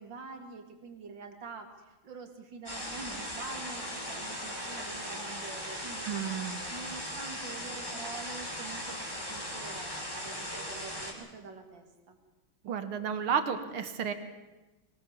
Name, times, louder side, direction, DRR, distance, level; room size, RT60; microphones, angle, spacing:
voice 1, 0.0-6.1 6.7-12.2, right 4 dB, 60° right, 6 dB, 3.1 m, -46 dB
sound 1, 2.7-11.1, equal, 10° left, 5.1 m, -38 dB
voice 2, 6.0-6.6 12.6-14.1, right 7 dB, 85° right, 10 dB, 2.5 m, -32 dB
23.0 x 20.0 x 7.3 m, 1.1 s
omnidirectional pair, 2.3 m